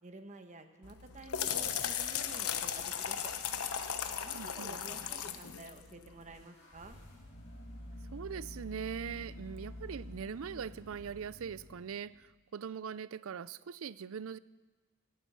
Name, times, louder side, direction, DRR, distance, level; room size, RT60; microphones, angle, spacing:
voice 1, 0.0-3.3 4.2-7.0, right 2 dB, 35° right, 7 dB, 1.2 m, -51 dB
sound 1, 0.8-6.4, left 8 dB, 85° left, 1.1 m, -37 dB
voice 2, 4.3-4.8 8.1-14.4, right 7 dB, 70° right, 18 dB, 0.4 m, -41 dB
sound 2, 6.3-12.2, left 1 dB, 65° left, 5.0 m, -48 dB
17.5 x 13.0 x 5.6 m, 1.3 s
head